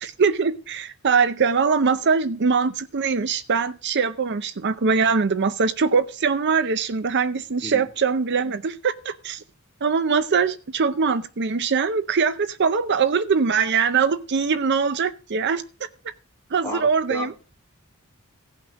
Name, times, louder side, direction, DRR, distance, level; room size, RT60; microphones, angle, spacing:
voice 1, 0.0-9.4 9.8-15.6 16.5-17.3, right 5 dB, 55° right, 0.6 m, -22 dB
voice 2, 16.6-17.4, left 2 dB, 15° left, 2.4 m, -33 dB
17.0 x 5.9 x 6.3 m
head